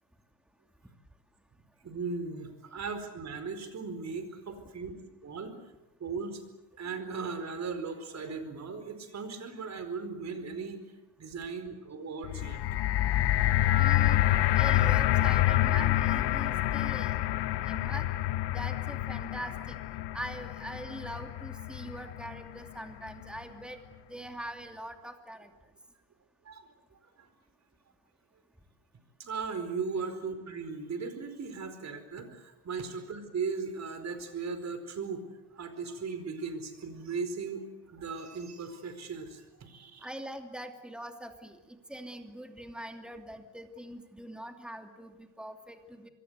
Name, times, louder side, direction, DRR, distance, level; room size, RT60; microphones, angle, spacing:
voice 1, 1.8-4.9 5.2-5.6 6.0-6.4 6.7-10.8 11.2-12.7 13.1-13.3 26.4-27.3 29.2-35.2 35.5-40.1, right 5 dB, 40° right, 9 dB, 4.7 m, -37 dB
sound 1, 12.2-22.5 23.2-23.3, left 14 dB, 75° left, 1.1 m, -27 dB
voice 2, 13.8-14.2 14.6-17.1 17.6-18.1 18.5-19.8 20.1-23.8 24.1-25.5 40.0-46.1, right 1 dB, ahead, 5 dB, 2.7 m, -42 dB
26.5 x 22.5 x 8.2 m, 1.0 s
cardioid pair, 125°, 41 cm